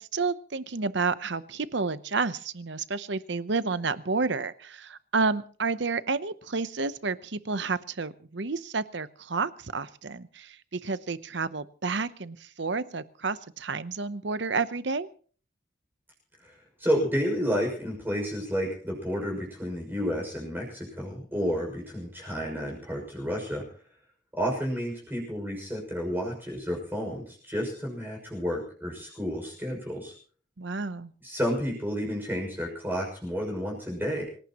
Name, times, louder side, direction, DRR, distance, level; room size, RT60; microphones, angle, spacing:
voice 1, 0.0-15.1 30.6-31.1, right 4 dB, 60° right, 14 dB, 0.9 m, -30 dB
voice 2, 16.4-23.7 24.3-30.1 31.2-34.2, equal, 10° right, -1 dB, 6.2 m, -31 dB
26.0 x 18.0 x 3.0 m, 0.44 s
head